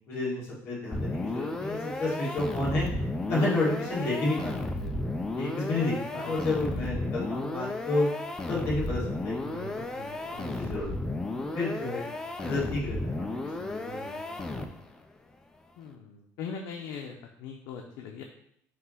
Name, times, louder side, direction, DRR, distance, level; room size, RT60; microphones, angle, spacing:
voice 1, 0.1-2.9 3.3-4.9 5.4-8.1 8.5-12.1 12.4-14.4, left 2 dB, 40° left, -7 dB, 1.8 m, -31 dB
sound 1, 0.9-15.0, left 2 dB, 10° left, 0.4 m, -34 dB
voice 2, 15.8-18.2, left 6 dB, 85° left, 2 dB, 0.6 m, -40 dB
5.9 x 2.9 x 5.5 m, 0.72 s
cardioid pair, 175°, 6 cm